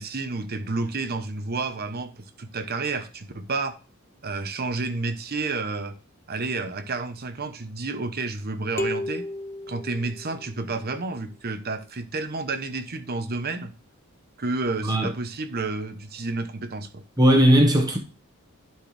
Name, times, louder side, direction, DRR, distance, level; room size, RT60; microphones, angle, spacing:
voice 1, 0.0-3.8 4.2-5.9 6.3-9.3 9.7-13.7 14.4-17.0, right 3 dB, 45° right, 0.9 m, -30 dB
sound 1, 8.8-10.7, left 1 dB, 10° left, 0.5 m, -33 dB
voice 2, 17.2-18.0, equal, 20° right, 1.4 m, -17 dB
11.5 x 4.5 x 3.3 m
head